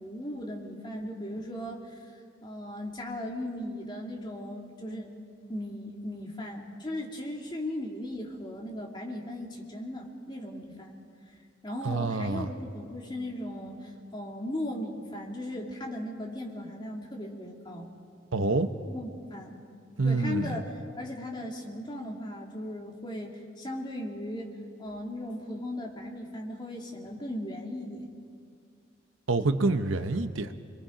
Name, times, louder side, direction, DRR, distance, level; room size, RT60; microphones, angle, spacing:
voice 1, 0.0-2.1 2.4-5.1 5.5-10.9 11.6-17.9 18.9-19.6 20.0-20.6 21.0-24.5 24.8-28.1, left 1 dB, 25° left, -1 dB, 2.6 m, -37 dB
voice 2, 11.8-12.5 18.3-18.7 20.0-20.6 29.3-30.5, right 3 dB, 85° right, 8 dB, 0.9 m, -27 dB
29.0 x 22.5 x 5.1 m, 2.3 s
head